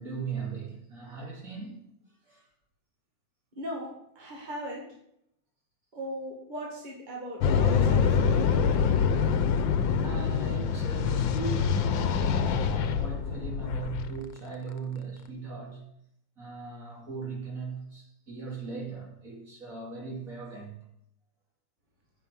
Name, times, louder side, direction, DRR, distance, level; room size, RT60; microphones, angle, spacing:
voice 1, 0.0-1.8 2.3-2.4 10.0-15.9 16.4-20.8, right 4 dB, 45° right, -2 dB, 3.1 m, -38 dB
voice 2, 3.6-3.9 4.2-4.8 5.9-8.9, equal, 25° right, -2 dB, 2.3 m, -38 dB
sound 1, 7.4-14.1, left 6 dB, 90° left, 1.6 m, -25 dB
10.5 x 6.7 x 7.3 m, 0.74 s
omnidirectional pair, 2.0 m